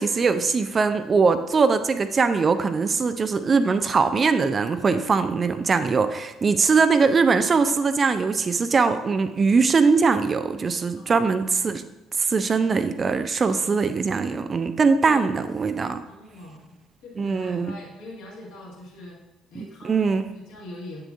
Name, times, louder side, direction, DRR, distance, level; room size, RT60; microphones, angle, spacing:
voice 1, 0.0-11.8 12.2-16.0 17.2-17.7 19.6-20.3, right 4 dB, 35° right, 10 dB, 0.4 m, -21 dB
voice 2, 10.9-11.4 13.4-13.7 15.0-15.4 16.0-16.7 17.0-19.2 19.5-21.0, left 1 dB, 60° left, -4 dB, 2.0 m, -42 dB
8.1 x 6.8 x 2.5 m, 1.0 s
figure-of-eight pair, 50°, 0 cm